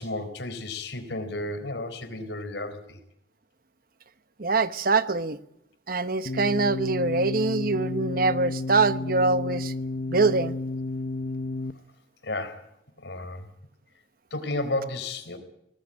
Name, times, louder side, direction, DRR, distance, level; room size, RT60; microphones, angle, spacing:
voice 1, 0.0-3.0 12.2-12.6 13.0-13.5 14.3-15.4, left 2 dB, 75° left, 4.0 m, -32 dB
voice 2, 4.4-5.4 5.9-9.7 10.1-10.6, right 3 dB, 55° right, 1.0 m, -24 dB
sound 1, 6.3-11.7, left 2 dB, 55° left, 0.9 m, -31 dB
24.0 x 18.5 x 9.0 m
head